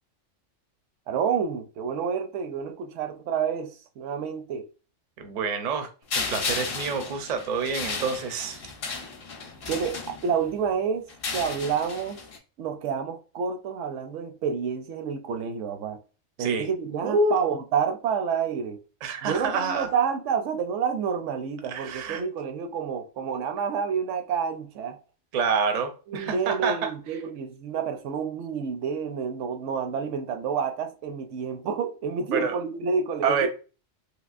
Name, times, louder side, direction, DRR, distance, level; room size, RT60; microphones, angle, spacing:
voice 1, 1.1-3.7 4.0-4.6 9.7-11.1 11.3-12.2 12.6-16.0 16.4-18.8 19.2-25.0 26.1-33.5, right 6 dB, 75° right, 0.9 m, -29 dB
voice 2, 5.2-5.9 6.1-8.6 16.4-16.7 17.0-17.3 19.0-19.9 21.7-22.2 25.3-27.2 32.3-32.6 33.2-33.5, right 4 dB, 50° right, 0.5 m, -27 dB
sound 1, 6.1-10.6 11.1-12.4, left 4 dB, 55° left, 0.8 m, -34 dB
3.3 x 2.8 x 2.5 m
omnidirectional pair, 1.3 m